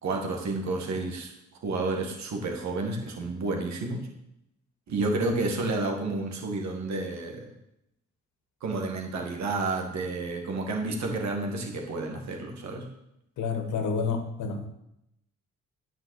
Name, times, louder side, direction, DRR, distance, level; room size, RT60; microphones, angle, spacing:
voice 1, 0.0-1.3 1.6-4.1 4.9-7.5 8.6-12.9, right 2 dB, 65° right, 2 dB, 2.1 m, -30 dB
voice 2, 13.4-14.7, left 5 dB, 75° left, 6 dB, 1.7 m, -29 dB
10.0 x 5.8 x 7.9 m, 0.83 s
cardioid pair, 90°, 30 cm